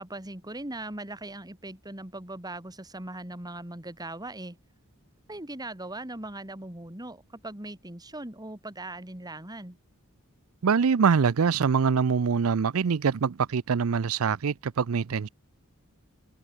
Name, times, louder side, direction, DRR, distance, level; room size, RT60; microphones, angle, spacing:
voice 1, 0.0-4.6 5.3-9.8, right 2 dB, 20° right, 2.7 m, -39 dB
voice 2, 10.6-15.3, right 6 dB, 70° right, 0.5 m, -24 dB
head